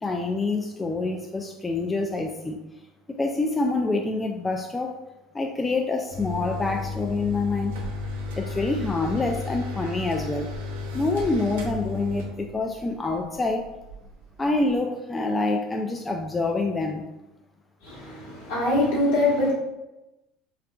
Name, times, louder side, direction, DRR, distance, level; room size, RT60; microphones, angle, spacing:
voice 1, 0.0-2.6 3.1-5.0 5.3-7.9 8.4-10.5 10.9-13.7 14.4-17.1, left 3 dB, 20° left, 2 dB, 0.3 m, -26 dB
sound 1, 6.1-14.8, left 3 dB, 75° right, 0.5 m, -33 dB
voice 2, 17.8-19.5, left 2 dB, 70° left, -6 dB, 1.3 m, -23 dB
3.5 x 2.3 x 2.2 m, 0.97 s
hypercardioid pair, 75°, 0 cm